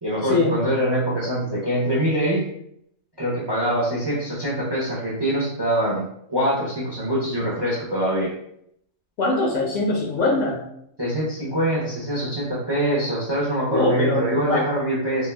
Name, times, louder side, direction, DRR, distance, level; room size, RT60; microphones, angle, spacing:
voice 1, 0.0-2.5 3.2-8.3 11.0-15.3, right 1 dB, 30° right, -6 dB, 0.4 m, -24 dB
voice 2, 9.2-10.6 13.7-14.7, left 2 dB, 75° left, -2 dB, 0.9 m, -22 dB
2.5 x 2.2 x 3.2 m, 0.74 s
omnidirectional pair, 1.3 m